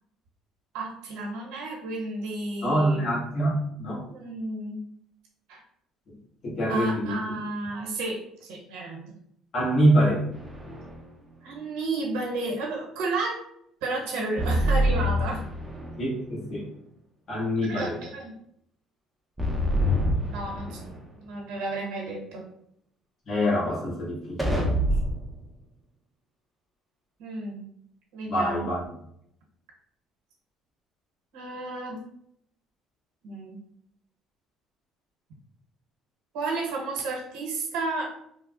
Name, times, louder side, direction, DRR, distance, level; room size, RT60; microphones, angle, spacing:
voice 1, 0.7-3.1 4.1-4.8 5.5-5.6 6.7-9.1 11.4-13.4 13.8-15.4 17.7-18.3 19.7-20.8 21.2-22.4 27.2-27.7 28.1-28.7 31.3-32.0 33.2-33.6 36.3-38.1, right 2 dB, 90° right, -2 dB, 0.9 m, -32 dB
voice 2, 2.6-4.0 6.1-6.2 6.4-7.2 9.5-10.3 16.0-16.7 17.3-18.0 23.2-24.6 28.2-28.9, equal, 45° left, -6 dB, 1.3 m, -25 dB
sound 1, 10.3-11.0 14.4-16.1 19.4-21.0 24.4-25.3, equal, 5° right, 0.6 m, -26 dB
3.4 x 2.1 x 2.4 m, 0.73 s
cardioid pair, 110°, 0 cm